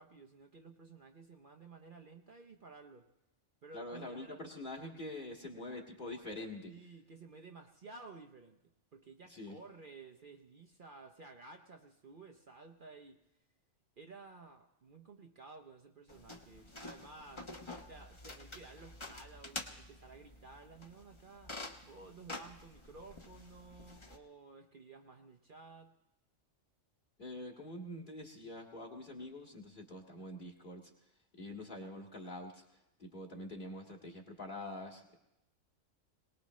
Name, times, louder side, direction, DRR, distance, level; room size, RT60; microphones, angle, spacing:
voice 1, 0.0-3.1 3.6-4.4 6.7-8.6 8.9-13.2 14.0-17.5 17.9-25.9, right 3 dB, 45° right, 4 dB, 0.9 m, -54 dB
voice 2, 3.7-6.7 9.3-9.6 27.2-30.9 31.4-32.6 33.0-35.2, left 1 dB, 40° left, 0 dB, 2.2 m, -45 dB
sound 1, 16.1-24.2, left 2 dB, 25° left, 1.0 m, -49 dB
22.5 x 19.0 x 3.1 m, 0.88 s
omnidirectional pair, 1.3 m